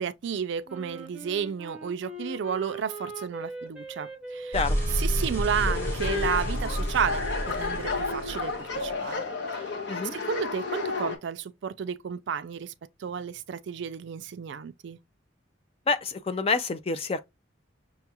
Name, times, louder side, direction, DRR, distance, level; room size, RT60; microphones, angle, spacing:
voice 1, 0.0-4.6 4.9-9.2 9.5-9.7 10.1-12.7 13.0-15.0, right 7 dB, 60° right, 0.3 m, -32 dB
Wind instrument woodwind instrument, 0.7-7.4, right 2 dB, 5° right, 0.8 m, -42 dB
sound 1, 4.5-8.9, equal, 10° left, 1.1 m, -30 dB
sound 2, 5.7-11.2, left 4 dB, 60° left, 0.9 m, -32 dB
voice 2, 15.9-17.2, left 4 dB, 30° left, 0.4 m, -27 dB
6.0 x 2.3 x 2.8 m
head